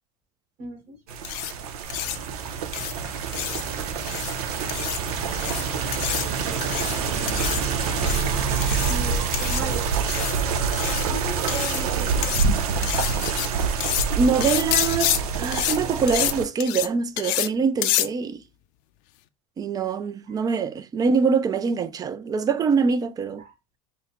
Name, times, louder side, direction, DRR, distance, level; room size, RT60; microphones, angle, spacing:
voice 1, 0.6-1.0 6.5-6.6 6.9-7.4 8.9-10.5 11.1-12.7 23.4-23.5, right 2 dB, 55° right, 1.7 m, -37 dB
sound 1, 1.1-16.5, right 6 dB, 85° right, 0.7 m, -27 dB
sound 2, 1.2-1.5 1.9-2.2 2.7-2.9 3.3-3.6 4.1-4.3 4.7-5.0 5.3-5.6 5.9-6.3 6.6-7.0 7.3-7.6 8.0-8.2 8.6-8.9 9.3-9.6 10.1-10.3 10.7-11.1 11.5-11.8 12.2-12.5 12.8-13.5 13.8-14.1 14.4-15.2 15.5-15.8 16.1-16.3 16.6-16.9 17.2-17.5 17.8-18.1, left 15 dB, 60° left, 0.5 m, -27 dB
Log Truck Pass, 1.8-13.6, right 3 dB, 35° right, 1.8 m, -35 dB
voice 2, 14.1-18.4 19.6-23.4, right 5 dB, 20° right, 0.4 m, -24 dB
3.9 x 2.1 x 4.1 m
supercardioid pair, 120°, 19 cm